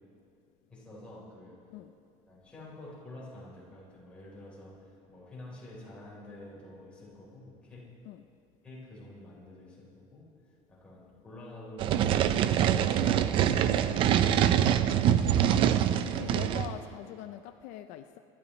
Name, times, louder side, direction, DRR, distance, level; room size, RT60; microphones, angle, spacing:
voice 1, 0.7-1.6 2.3-7.9 8.6-10.3 10.7-12.2 12.6-14.9, left 1 dB, 10° left, -7 dB, 3.9 m, -48 dB
sound 1, 11.8-16.8, right 10 dB, 40° right, 0.5 m, -24 dB
voice 2, 15.1-15.6 16.0-18.2, left 12 dB, 65° left, 8 dB, 0.6 m, -43 dB
25.5 x 12.5 x 3.2 m, 2.7 s
cardioid pair, 170°, 13 cm